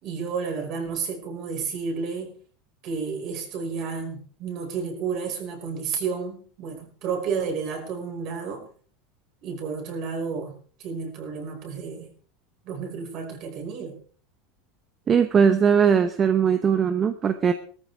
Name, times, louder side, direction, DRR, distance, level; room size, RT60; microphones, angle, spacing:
voice 1, 0.0-2.4 2.8-8.7 9.4-12.1 12.6-14.0, right 5 dB, 45° right, 3 dB, 5.2 m, -31 dB
voice 2, 15.1-17.5, right 7 dB, 25° right, 8 dB, 0.9 m, -20 dB
19.0 x 14.0 x 3.5 m, 0.44 s
supercardioid pair, 155°, 0 cm